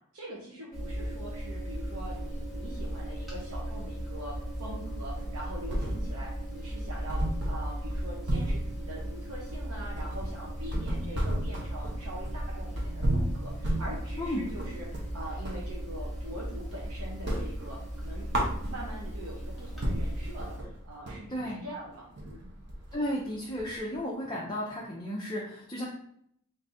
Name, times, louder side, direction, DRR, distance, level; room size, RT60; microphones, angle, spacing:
voice 1, 0.1-18.3 18.7-22.5, right 1 dB, 90° right, -4 dB, 0.8 m, -43 dB
sound 1, 0.7-20.6, equal, ahead, 0.9 m, -37 dB
sound 2, 5.2-6.3 6.6-6.7 7.1-15.7 16.1-16.8 17.1-19.1 19.5-19.6 19.8-24.0, right 1 dB, 50° right, 0.8 m, -33 dB
voice 2, 21.3-21.6 22.9-25.8, equal, 20° left, -5 dB, 0.5 m, -33 dB
3.8 x 2.6 x 3.4 m, 0.69 s
head